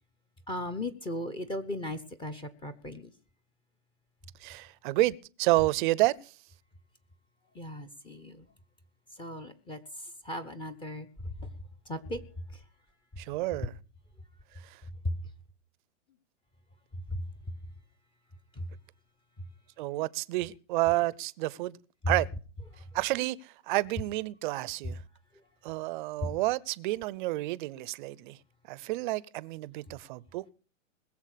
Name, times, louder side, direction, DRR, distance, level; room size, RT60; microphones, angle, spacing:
voice 1, 0.5-3.1 7.5-8.5 9.1-11.5 11.9-12.6 15.0-15.2 17.1-17.2 18.5-18.7 19.4-19.5 24.8-24.9 26.2-26.4, left 1 dB, 10° left, 0.9 m, -37 dB
voice 2, 4.4-6.3 13.2-13.7 14.6-14.8 19.8-21.8 22.1-22.3 22.9-25.0 25.6-28.4 28.7-30.5, right 19 dB, 40° right, 0.7 m, -30 dB
20.5 x 7.3 x 6.7 m
hypercardioid pair, 140°, 39 cm